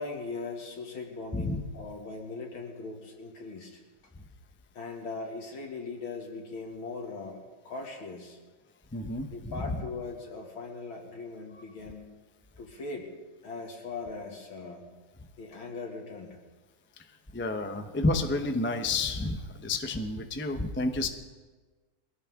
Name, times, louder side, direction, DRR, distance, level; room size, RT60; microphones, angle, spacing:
voice 1, 0.0-3.8 4.7-8.4 9.3-12.1 12.6-13.1 13.4-14.8 15.4-16.4 21.0-21.1, left 3 dB, 80° left, 1 dB, 3.1 m, -40 dB
voice 2, 8.9-9.8 17.3-21.1, left 2 dB, 15° left, 6 dB, 0.4 m, -30 dB
23.0 x 16.5 x 3.7 m, 1.3 s
omnidirectional pair, 2.2 m